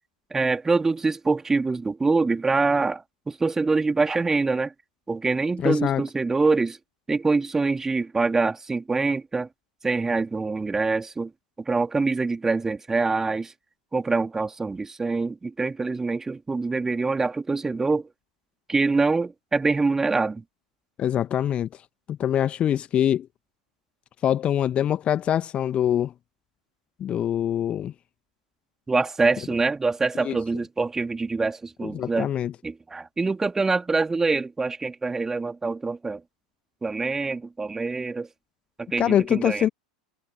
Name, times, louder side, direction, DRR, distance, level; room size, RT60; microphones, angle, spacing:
voice 1, 0.3-4.7 5.1-6.8 7.1-9.5 9.8-11.3 11.7-13.5 13.9-18.1 18.7-20.4 28.9-32.3 32.6-36.2 36.8-38.3 38.8-39.7, right 3 dB, 10° right, 2.6 m, -25 dB
voice 2, 5.6-6.0 21.0-21.7 22.1-23.3 24.2-26.1 27.0-27.9 30.2-30.4 31.9-32.5 39.0-39.7, left 10 dB, 30° left, 1.6 m, -24 dB
figure-of-eight pair, 85°, 4 cm